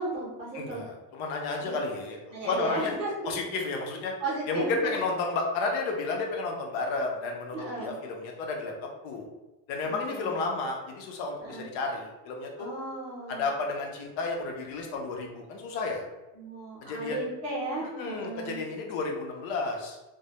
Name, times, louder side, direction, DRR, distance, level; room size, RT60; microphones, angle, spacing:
voice 1, 0.0-0.8 1.6-1.8 2.3-3.1 3.7-4.9 7.5-7.9 9.8-10.3 11.4-11.7 12.6-13.5 16.3-18.6, right 2 dB, 15° right, -8 dB, 0.5 m, -35 dB
voice 2, 0.5-2.9 3.2-4.1 4.5-9.3 9.7-12.7 13.3-16.0 16.8-17.2 18.0-20.0, left 3 dB, 75° left, 1 dB, 0.6 m, -32 dB
2.2 x 2.0 x 2.8 m, 1.1 s
cardioid pair, 170°, 47 cm